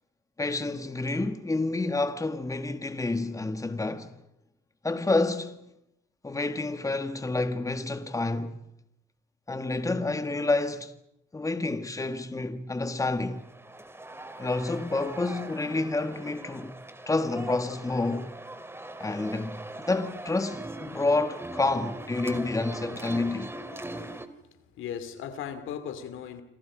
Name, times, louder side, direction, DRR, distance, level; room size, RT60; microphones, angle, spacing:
voice 1, 0.4-4.2 4.8-5.6 6.2-8.6 9.5-10.9 11.3-13.5 14.4-16.7 17.1-18.3 19.0-23.5, left 2 dB, 15° left, 1.7 m, -29 dB
sound 1, 13.2-24.3, right 1 dB, 10° right, 2.3 m, -41 dB
voice 2, 24.8-26.4, left 8 dB, 85° left, 2.6 m, -37 dB
28.0 x 27.0 x 5.1 m
cardioid pair, 90°, 20 cm